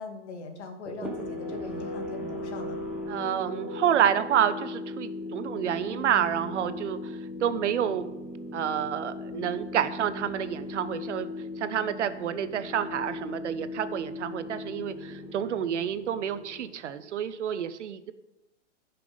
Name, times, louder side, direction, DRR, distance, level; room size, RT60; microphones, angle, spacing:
voice 1, 0.0-2.8, left 4 dB, 65° left, 4 dB, 2.4 m, -41 dB
sound 1, 0.9-17.1, left 2 dB, 5° right, 1.2 m, -38 dB
voice 2, 3.1-8.1 8.5-11.3 11.6-18.1, right 9 dB, 70° right, 12 dB, 1.0 m, -29 dB
15.0 x 6.0 x 5.1 m, 0.92 s
hypercardioid pair, 155°, 37 cm